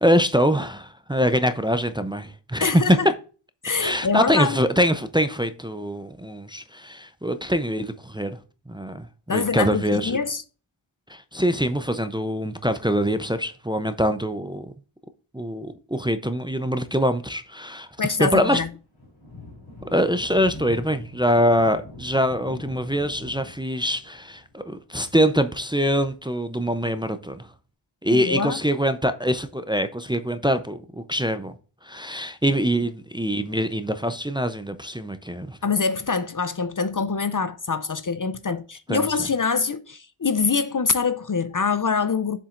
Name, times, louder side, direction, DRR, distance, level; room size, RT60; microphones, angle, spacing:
voice 1, 0.0-3.0 3.8-8.4 8.7-10.1 11.1-14.7 15.3-17.9 18.2-18.6 19.8-27.5 28.0-31.5 31.8-35.6 38.9-39.1, equal, 10° right, 0.5 m, -24 dB
voice 2, 2.6-3.1 3.6-4.6 9.3-10.4 18.0-18.7 28.1-28.6 35.6-42.4, left 5 dB, 40° left, 0.5 m, -24 dB
Thunder, 17.9-27.1, left 1 dB, 85° left, 3.5 m, -44 dB
7.2 x 7.2 x 2.5 m
wide cardioid pair, 45°, 48 cm